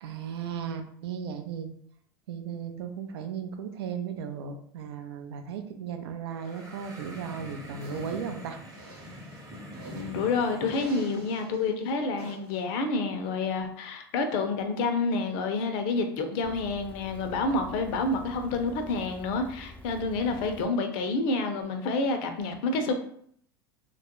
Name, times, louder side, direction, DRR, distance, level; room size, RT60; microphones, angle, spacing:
voice 1, 0.0-1.7 2.3-8.6, right 7 dB, 85° right, 6 dB, 0.4 m, -36 dB
sound 1, 6.3-11.3, equal, 25° right, 0.7 m, -44 dB
sound 2, 7.8-8.2 8.7-10.2 10.7-11.6 12.2-12.6, right 2 dB, 65° right, 0.9 m, -47 dB
voice 2, 10.0-22.9, left 3 dB, 65° left, 6 dB, 0.5 m, -28 dB
sound 3, 16.4-20.7 21.6-21.7, left 2 dB, 10° left, 0.4 m, -47 dB
2.3 x 2.0 x 2.9 m, 0.65 s
hypercardioid pair, 100°, 13 cm